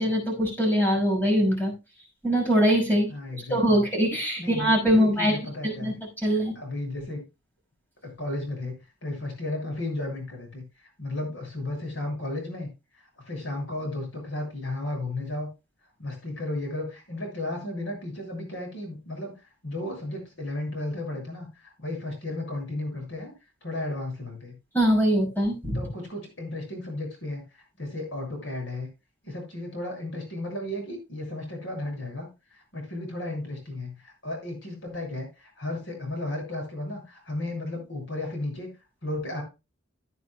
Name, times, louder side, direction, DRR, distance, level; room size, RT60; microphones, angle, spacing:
voice 1, 0.0-1.7 2.2-3.1 3.5-5.4 5.6-5.9 6.2-6.5 24.7-25.8, equal, 10° left, 0 dB, 5.8 m, -22 dB
voice 2, 3.1-3.8 4.4-6.0 6.3-7.2 8.0-8.7 9.0-10.6 11.0-12.7 13.0-15.5 16.0-19.3 19.6-23.3 23.6-24.5 25.7-28.9 29.2-38.7 39.0-39.4, left 1 dB, 65° left, 2 dB, 7.3 m, -34 dB
16.0 x 9.4 x 2.3 m, 0.27 s
head